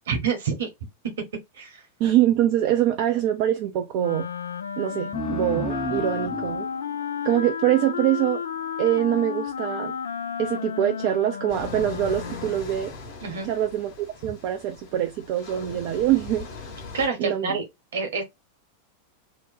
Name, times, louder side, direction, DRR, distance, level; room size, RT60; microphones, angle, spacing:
voice 1, 0.1-0.7 1.6-1.8 13.2-13.5 16.9-17.6 17.9-18.2, right 5 dB, 65° right, 1.1 m, -27 dB
voice 2, 2.0-4.3 4.8-6.7 7.2-8.4 8.8-9.9 10.4-12.9 13.5-16.5 17.2-17.6, right 12 dB, 45° right, 0.4 m, -24 dB
Wind instrument woodwind instrument, 4.0-12.6, left 7 dB, 65° left, 0.3 m, -32 dB
sound 1, 5.1-8.3, right 1 dB, ahead, 0.6 m, -34 dB
sound 2, 11.5-17.1, left 4 dB, 45° left, 1.1 m, -40 dB
2.9 x 2.1 x 4.1 m
figure-of-eight pair, 90°, 0 cm